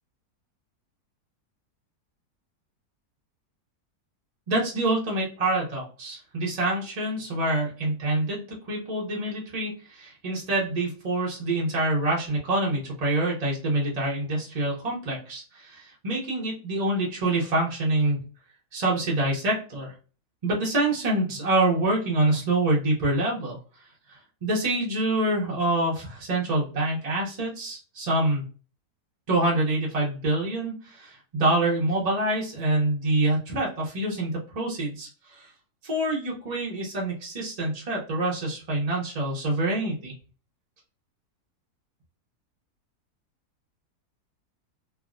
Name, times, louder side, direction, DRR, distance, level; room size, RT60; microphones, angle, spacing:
voice 1, 4.5-18.2 18.7-19.9 20.4-23.6 24.1-28.5 29.3-35.5 35.8-40.1, right 2 dB, 45° right, -4 dB, 0.5 m, -26 dB
3.3 x 2.1 x 2.4 m, 0.37 s
omnidirectional pair, 1.7 m